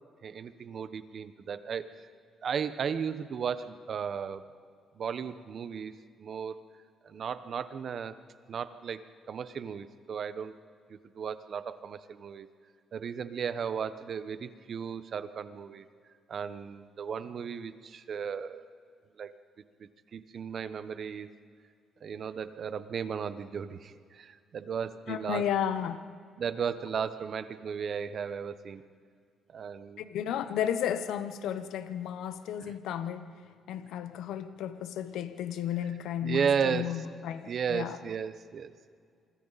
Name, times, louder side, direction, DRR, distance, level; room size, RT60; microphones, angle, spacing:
voice 1, 0.2-1.9 2.4-4.4 5.0-5.9 6.2-6.6 7.0-8.2 8.5-10.6 10.9-12.5 12.9-15.8 16.3-18.6 19.2-19.3 19.8-21.3 22.0-25.4 26.4-28.8 29.5-30.0 32.6-32.7 36.2-36.9 37.5-38.7, right 7 dB, 55° right, 1.1 m, -35 dB
voice 2, 25.1-26.1 30.0-33.4 33.7-38.0, left 9 dB, 85° left, 1.0 m, -33 dB
27.5 x 24.5 x 4.2 m
cardioid pair, 90°, 0 cm